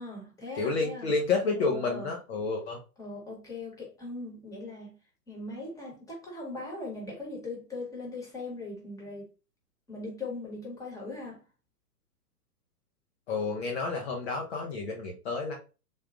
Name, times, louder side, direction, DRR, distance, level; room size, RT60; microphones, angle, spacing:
voice 1, 0.0-1.1 1.5-2.1 3.0-5.0 5.3-9.3 9.9-11.4, left 2 dB, 5° left, 1.2 m, -40 dB
voice 2, 0.6-2.8 13.3-15.6, left 4 dB, 45° left, 0.8 m, -30 dB
3.8 x 2.6 x 2.4 m
figure-of-eight pair, 110°, 47 cm